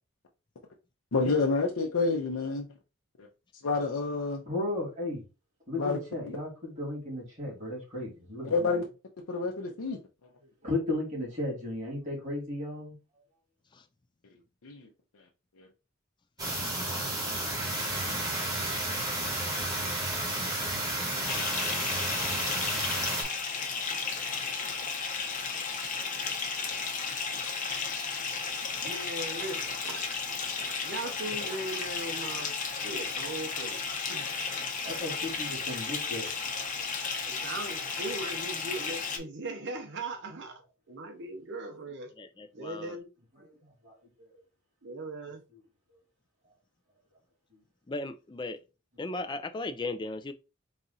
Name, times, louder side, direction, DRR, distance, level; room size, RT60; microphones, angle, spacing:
voice 1, 1.1-2.7 3.2-3.3 3.6-4.4 5.8-6.0 8.4-8.9 9.3-10.0 14.6-14.9 15.6-15.7, left 3 dB, 90° left, 0.7 m, -28 dB
voice 2, 4.5-5.2 5.7-8.8 10.6-13.0 34.8-36.3 43.8-44.3 47.5-47.6, left 2 dB, 35° right, 2.4 m, -35 dB
sound 1, 16.4-23.2, right 1 dB, 15° right, 1.5 m, -32 dB
Bathtub (filling or washing) / Fill (with liquid), 21.2-39.2, left 5 dB, 40° left, 0.8 m, -34 dB
voice 3, 28.8-30.2 30.8-32.5 32.8-33.8 34.1-34.3 37.2-40.6 40.9-42.1 42.5-43.1 43.4-43.7 44.8-45.4, right 2 dB, 55° right, 0.8 m, -39 dB
voice 4, 42.2-43.0 47.9-48.6 49.0-50.3, left 2 dB, 20° left, 0.4 m, -37 dB
4.1 x 2.4 x 4.0 m
head